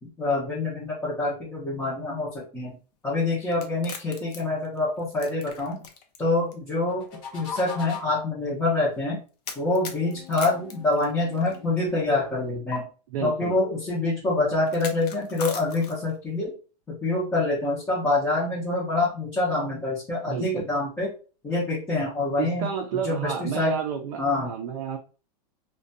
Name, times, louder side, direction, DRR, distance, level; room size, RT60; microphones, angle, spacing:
voice 1, 0.0-2.8 3.0-5.8 6.2-7.1 7.3-9.2 9.6-12.9 13.2-16.5 16.9-21.1 21.4-22.7 22.9-23.8 24.2-24.5, left 2 dB, 10° left, -8 dB, 0.6 m, -26 dB
sound 1, 3.5-6.2 6.5-6.6 7.5-7.6 9.5-11.6 12.7-12.8 14.7-16.2, left 6 dB, 75° left, 0.6 m, -38 dB
sound 2, 6.9-8.3 9.7-12.6, left 6 dB, 55° left, 1.0 m, -42 dB
voice 2, 13.1-13.6 20.3-20.7 22.4-25.0, right 8 dB, 50° right, 2 dB, 0.4 m, -31 dB
2.4 x 2.2 x 2.5 m, 0.35 s
supercardioid pair, 150°, 21 cm